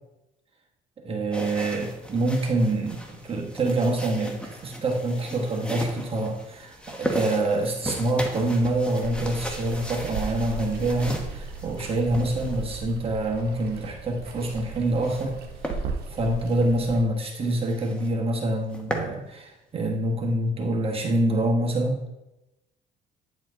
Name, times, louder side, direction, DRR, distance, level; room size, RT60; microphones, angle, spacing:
voice 1, 1.0-15.4 15.7-22.1, right 1 dB, 35° right, 0 dB, 1.1 m, -26 dB
sound 1, 1.3-13.0 14.3-15.3 15.6-15.8 16.3-16.5 16.9-17.0 17.2-17.3 17.7-18.1 18.5-19.1, equal, 5° left, 1.0 m, -36 dB
Water, 9.0-17.0, right 4 dB, 70° right, 0.9 m, -37 dB
9.0 x 4.3 x 3.7 m, 0.96 s
cardioid pair, 110°, 17 cm